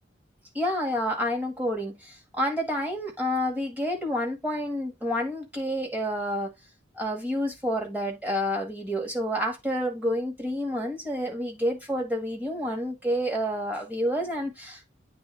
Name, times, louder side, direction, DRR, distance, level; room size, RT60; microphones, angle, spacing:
voice 1, 0.5-6.5 7.0-14.9, equal, 10° right, 1.9 m, -29 dB
8.8 x 3.5 x 3.4 m
head